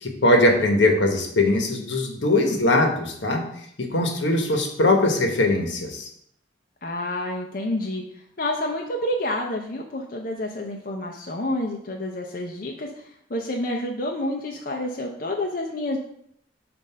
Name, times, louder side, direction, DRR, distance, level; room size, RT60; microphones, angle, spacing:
voice 1, 0.0-3.4 3.8-6.1, left 2 dB, 80° left, 4 dB, 1.0 m, -21 dB
voice 2, 6.8-8.0 8.4-16.0, left 1 dB, 50° left, 0 dB, 0.6 m, -29 dB
7.2 x 2.6 x 5.5 m, 0.70 s
head